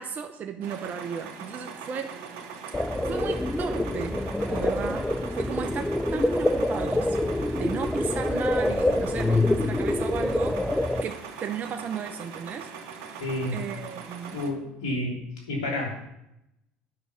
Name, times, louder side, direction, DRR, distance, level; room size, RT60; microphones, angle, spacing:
voice 1, 0.0-2.1 3.0-7.2 7.5-10.6 11.0-13.3 13.5-14.4, right 7 dB, 45° right, 6 dB, 0.7 m, -35 dB
sound 1, 0.6-14.5, right 6 dB, 70° right, 1.5 m, -41 dB
sound 2, 2.7-11.0, left 1 dB, 10° left, 0.5 m, -26 dB
voice 2, 13.2-13.6 14.3-15.2 15.5-16.1, left 1 dB, 85° left, -2 dB, 3.3 m, -30 dB
8.6 x 6.1 x 6.9 m, 0.85 s
hypercardioid pair, 80°, 4 cm